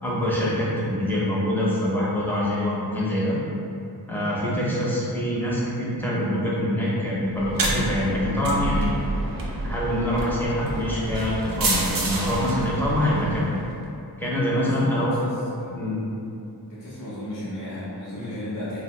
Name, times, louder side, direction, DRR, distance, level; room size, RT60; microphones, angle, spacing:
voice 1, 0.0-3.3 4.1-8.9 9.6-13.5 14.2-15.2 15.7-16.0, left 1 dB, 5° left, -7 dB, 0.6 m, -25 dB
sound 1, 7.3-13.7, right 2 dB, 55° right, 0.5 m, -28 dB
voice 2, 14.5-15.8 16.7-18.8, left 1 dB, 50° left, -9 dB, 0.6 m, -35 dB
2.8 x 2.0 x 2.9 m, 2.7 s
wide cardioid pair, 90°, 41 cm